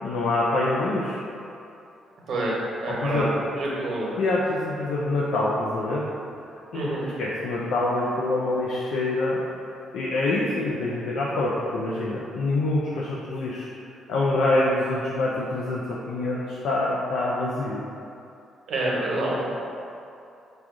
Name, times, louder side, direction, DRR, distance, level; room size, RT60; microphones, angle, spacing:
voice 1, 0.0-1.2 2.9-3.4 4.2-6.0 6.7-9.4 9.9-13.7 14.1-17.8, left 2 dB, 80° left, -5 dB, 0.5 m, -25 dB
voice 2, 2.8-3.3 3.6-4.1 6.7-7.0 18.7-19.4, right 2 dB, 60° right, -5 dB, 1.1 m, -27 dB
4.8 x 2.4 x 3.7 m, 2.7 s
cardioid pair, 90°, 0 cm